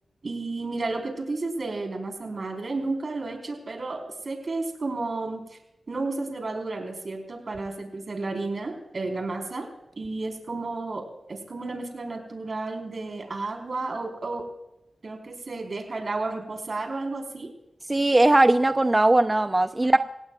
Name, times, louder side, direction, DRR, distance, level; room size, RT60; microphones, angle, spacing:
voice 1, 0.2-5.4 5.9-9.7 10.0-14.4 15.0-17.5 19.9-20.0, right 3 dB, 55° right, 3 dB, 4.4 m, -32 dB
voice 2, 17.9-20.0, right 2 dB, 25° right, 8 dB, 0.6 m, -19 dB
26.0 x 17.5 x 2.4 m, 0.89 s
wide cardioid pair, 75°, 0 cm